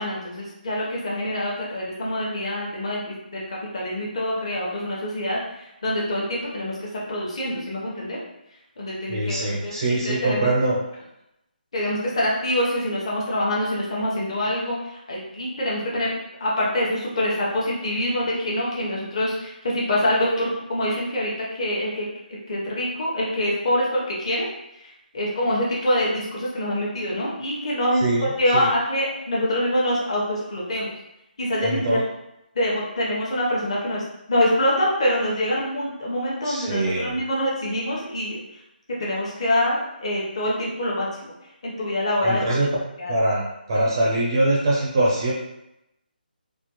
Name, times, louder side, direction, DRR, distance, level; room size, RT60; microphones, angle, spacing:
voice 1, 0.0-8.2 8.8-10.5 11.7-16.1 16.4-24.5 24.8-28.1 28.4-30.9 31.4-32.0 32.5-38.4 39.0-41.3 41.6-42.7 43.0-43.1, left 1 dB, 35° left, -5 dB, 0.9 m, -25 dB
voice 2, 9.1-10.8 28.0-28.2 28.5-28.7 31.6-32.0 36.4-37.2 42.2-42.7 43.1-45.3, right 2 dB, 25° right, -3 dB, 0.5 m, -23 dB
4.2 x 2.2 x 2.9 m, 0.87 s
hypercardioid pair, 175°, 5 cm